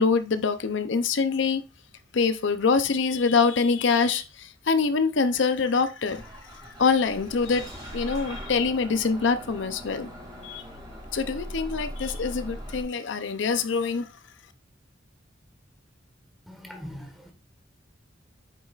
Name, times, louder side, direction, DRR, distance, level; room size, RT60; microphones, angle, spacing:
voice 1, 0.0-1.6 2.1-6.2 6.5-10.1 10.4-10.6 11.1-14.1, left 5 dB, 75° left, 0.6 m, -25 dB
Bus / Engine starting, 6.1-12.8, equal, 20° right, 2.5 m, -40 dB
voice 2, 16.5-17.3, equal, ahead, 1.4 m, -41 dB
8.5 x 6.3 x 2.4 m
head